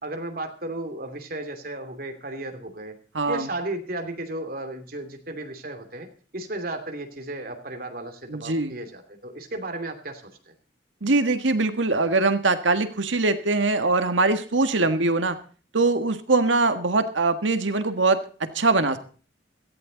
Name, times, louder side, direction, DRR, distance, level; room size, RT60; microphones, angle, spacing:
voice 1, 0.0-3.0 3.3-10.5 14.9-15.1, right 2 dB, 50° right, 5 dB, 2.7 m, -34 dB
voice 2, 3.1-3.5 8.3-8.7 11.0-15.4 15.7-19.0, right 3 dB, 90° right, 9 dB, 1.6 m, -22 dB
17.5 x 14.0 x 4.0 m, 0.40 s
head